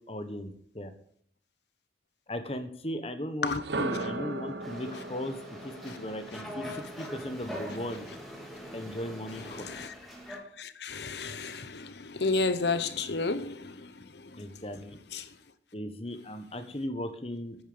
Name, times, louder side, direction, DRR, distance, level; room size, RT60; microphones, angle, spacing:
voice 1, 0.1-0.9 2.3-6.7 7.0-8.1 8.7-9.7 14.4-15.0 15.7-17.6, left 1 dB, 35° left, 1.4 m, -37 dB
sound 1, 3.5-7.5, right 2 dB, 80° right, 1.3 m, -37 dB
sound 2, 4.6-10.4, equal, ahead, 2.8 m, -43 dB
voice 2, 9.5-9.9 10.3-14.4 15.1-15.3, left 3 dB, 75° left, 1.0 m, -32 dB
9.8 x 9.1 x 6.9 m
head